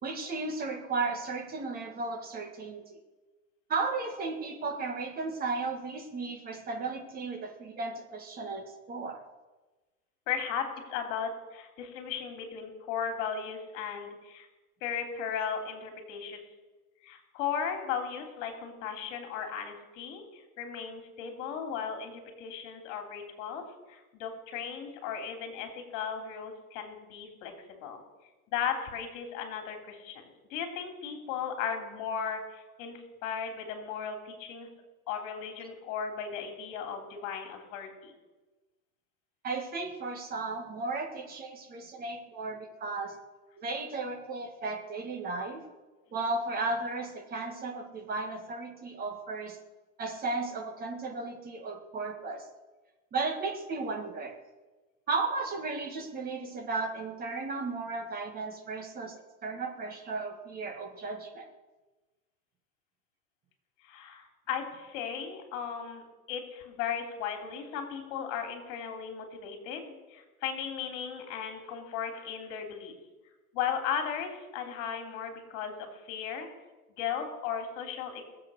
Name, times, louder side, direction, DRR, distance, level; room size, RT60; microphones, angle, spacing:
voice 1, 0.0-2.9 3.7-9.2 39.4-43.2 43.6-45.6 46.1-49.6 50.0-52.5 53.1-54.4 55.1-61.5, right 3 dB, 20° right, 5 dB, 1.7 m, -35 dB
voice 2, 10.3-14.5 14.8-16.4 17.0-23.6 23.9-28.0 28.5-34.7 35.1-38.1 63.8-72.9 73.5-76.5 77.0-78.2, left 7 dB, 40° left, 4 dB, 3.4 m, -36 dB
20.5 x 7.8 x 6.4 m, 1.2 s
supercardioid pair, 140°, 45 cm